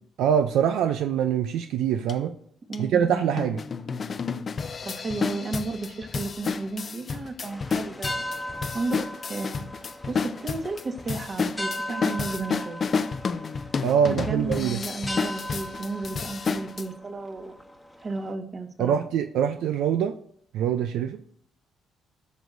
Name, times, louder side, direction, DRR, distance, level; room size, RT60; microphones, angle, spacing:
voice 1, 0.2-2.3 2.8-3.6 13.8-14.8 18.8-20.2 20.5-21.2, right 8 dB, 80° right, 7 dB, 0.5 m, -24 dB
sound 1, 2.1-2.2 2.7-2.8 3.4-16.8, left 5 dB, 40° left, 0.5 m, -31 dB
voice 2, 2.7-3.3 4.8-9.6 10.1-12.8 14.2-17.5 18.0-19.0, right 3 dB, 40° right, 4 dB, 1.6 m, -33 dB
sound 2, 7.4-18.3, left 1 dB, 5° left, 1.2 m, -38 dB
17.5 x 6.2 x 2.7 m, 0.64 s
cardioid pair, 85°, 0 cm